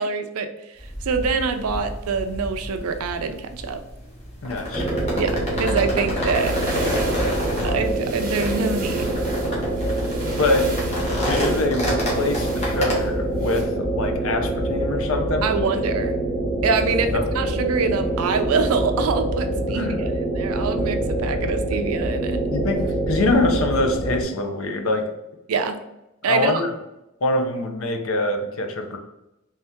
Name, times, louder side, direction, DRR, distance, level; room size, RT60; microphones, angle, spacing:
voice 1, 0.0-3.8 5.2-6.5 7.6-9.2 15.4-16.1 16.6-22.4 25.5-25.8 26.2-26.6, right 5 dB, 85° right, 7 dB, 0.4 m, -25 dB
sound 1, 0.8-13.0, equal, 30° left, 1.0 m, -30 dB
voice 2, 4.4-4.9 10.4-10.7 11.1-15.5 17.1-17.2 19.7-20.0 22.5-25.0 26.3-26.7 27.2-29.0, left 2 dB, 70° left, 4 dB, 0.6 m, -24 dB
sound 2, 4.7-24.2, right 1 dB, 10° right, 0.7 m, -25 dB
sound 3, 6.3-13.6, right 2 dB, 40° right, 0.9 m, -37 dB
3.4 x 2.8 x 3.5 m, 0.92 s
head